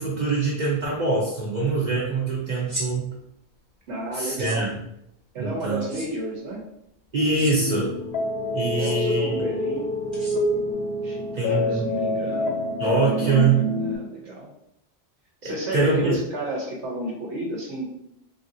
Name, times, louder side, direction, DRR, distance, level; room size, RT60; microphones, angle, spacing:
voice 1, 0.0-3.1 4.1-4.7 5.4-5.8 7.1-7.9 8.5-9.5 11.3-11.9 12.8-13.6 15.4-16.2, right 3 dB, 50° right, -4 dB, 0.6 m, -24 dB
sound 1, 2.6-2.9 4.2-4.6 5.8-6.1 7.2-7.5 8.6-8.9 10.1-10.7, equal, 25° right, 1.1 m, -35 dB
voice 2, 3.9-4.7 5.3-6.6 8.7-10.7 11.0-14.5 15.4-17.8, right 1 dB, 85° right, -2 dB, 1.0 m, -33 dB
sound 2, 7.2-14.0, left 1 dB, 65° left, 0.8 m, -27 dB
3.3 x 2.5 x 2.6 m, 0.76 s
omnidirectional pair, 1.1 m